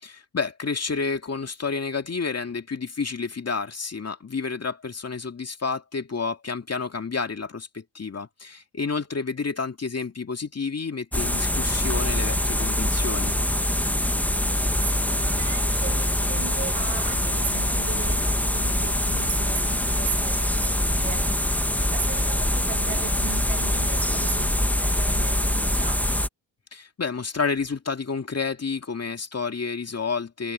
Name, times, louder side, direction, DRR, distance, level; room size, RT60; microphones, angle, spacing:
voice 1, 0.0-13.4 26.7-30.5, left 5 dB, 30° left, 2.5 m, -30 dB
sound 1, 11.1-26.3, left 1 dB, 5° left, 1.3 m, -24 dB
voice 2, 14.9-26.1, right 13 dB, 70° right, 7.1 m, -37 dB
supercardioid pair, 70°, 50 cm